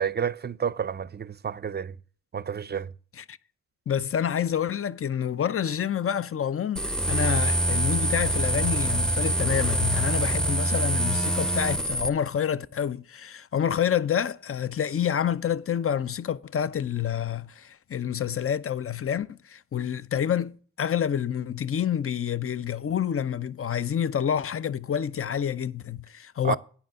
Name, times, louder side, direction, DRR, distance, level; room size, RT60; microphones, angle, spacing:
voice 1, 0.0-2.0 2.3-2.9 26.4-26.6, right 7 dB, 30° right, 0.5 m, -30 dB
voice 2, 3.9-20.5 20.8-26.6, left 9 dB, 40° left, 0.6 m, -28 dB
sound 1, 6.8-12.1, right 1 dB, ahead, 0.7 m, -25 dB
9.3 x 5.7 x 7.5 m
cardioid pair, 55°, 33 cm